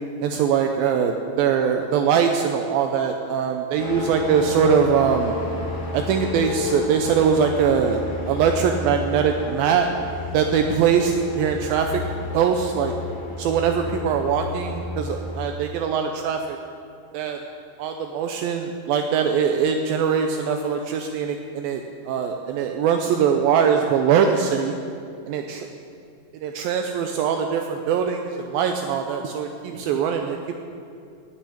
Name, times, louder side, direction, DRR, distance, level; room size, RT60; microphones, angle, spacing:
voice 1, 0.2-5.4 5.9-9.9 10.3-12.0 12.3-12.9 13.4-16.6 17.1-17.4 17.8-24.8 25.3-25.7 26.3-30.5, right 7 dB, 80° right, 4 dB, 2.4 m, -22 dB
sound 1, 3.8-15.4, left 2 dB, 80° left, 4.3 m, -31 dB
17.5 x 6.0 x 9.9 m, 2.5 s
omnidirectional pair, 4.4 m